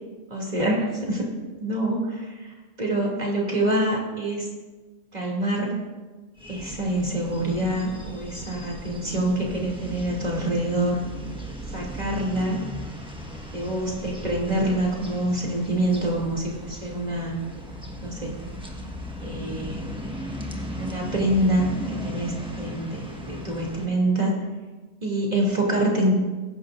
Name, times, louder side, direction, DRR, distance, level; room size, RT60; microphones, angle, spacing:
voice 1, 0.3-1.2 1.6-4.5 5.1-5.7 6.5-11.0 11.7-12.6 13.5-17.4 18.0-18.3 19.2-19.9 20.8-24.3 25.0-26.2, right 1 dB, 30° right, -3 dB, 2.9 m, -26 dB
sound 1, 6.4-23.9, equal, 5° right, 1.4 m, -37 dB
21.5 x 11.0 x 2.6 m, 1.3 s
omnidirectional pair, 1.3 m